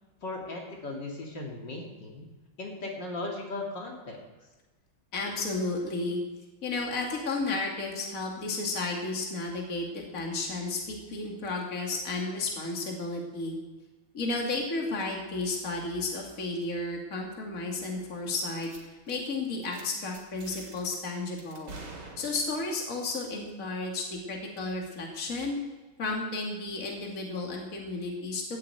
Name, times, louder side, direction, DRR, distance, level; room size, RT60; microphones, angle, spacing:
voice 1, 0.2-2.3 2.6-4.2, left 2 dB, 55° left, -1 dB, 3.0 m, -37 dB
voice 2, 5.1-6.2 6.6-13.6 14.1-18.7 19.1-21.7 22.2-25.6 26.0-28.4, left 3 dB, 40° left, 0 dB, 2.7 m, -33 dB
sound 1, 18.6-18.8 19.1-19.3 19.6-19.8 20.1-21.0 21.4-22.7, right 3 dB, 70° right, 3.5 m, -46 dB
14.0 x 8.4 x 8.9 m, 1.2 s
omnidirectional pair, 2.3 m